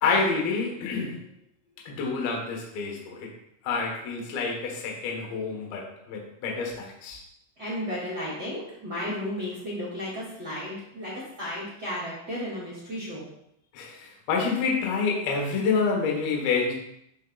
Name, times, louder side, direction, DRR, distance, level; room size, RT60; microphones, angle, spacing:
voice 1, 0.0-1.2 1.9-3.3 3.6-7.2 13.7-16.7, left 4 dB, 65° left, -1 dB, 2.9 m, -28 dB
voice 2, 7.6-13.3, left 1 dB, 30° right, -8 dB, 2.2 m, -34 dB
13.5 x 4.6 x 2.4 m, 0.76 s
omnidirectional pair, 5.0 m